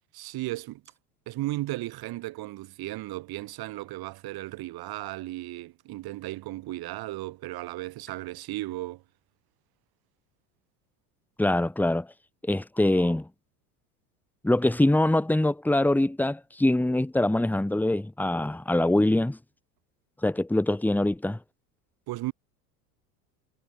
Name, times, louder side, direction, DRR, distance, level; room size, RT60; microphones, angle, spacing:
voice 1, 0.1-0.8 1.3-9.0 22.1-22.3, right 17 dB, 50° right, 2.9 m, -35 dB
voice 2, 11.4-12.1 12.4-13.3 14.4-19.4 20.2-21.4, left 1 dB, 5° left, 1.8 m, -24 dB
hypercardioid pair, 80°, 47 cm